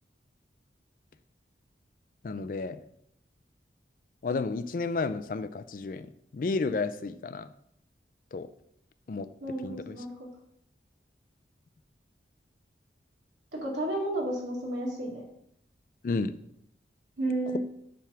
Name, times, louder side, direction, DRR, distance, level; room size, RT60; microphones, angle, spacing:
voice 1, 2.2-2.8 4.2-6.1 6.3-7.5 8.3-8.5 9.1-9.3 9.6-10.0 16.0-16.3, left 3 dB, 50° left, 13 dB, 0.4 m, -31 dB
voice 2, 9.4-10.3 13.6-15.2 17.2-17.6, right 1 dB, 90° right, -2 dB, 2.1 m, -32 dB
7.5 x 3.5 x 5.8 m, 0.73 s
head